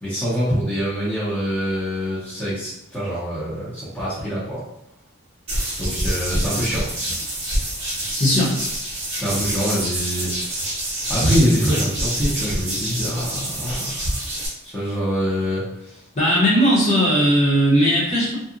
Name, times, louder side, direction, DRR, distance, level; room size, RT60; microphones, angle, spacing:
voice 1, 0.0-4.6 5.8-6.8 9.2-10.7 11.1-14.2 14.6-16.0, equal, 5° left, -12 dB, 0.7 m, -24 dB
sound 1, 5.5-14.5, right 1 dB, 25° right, 1.0 m, -26 dB
voice 2, 8.1-8.6 16.1-18.4, equal, 30° left, -7 dB, 0.9 m, -17 dB
2.7 x 2.3 x 2.5 m, 0.80 s
head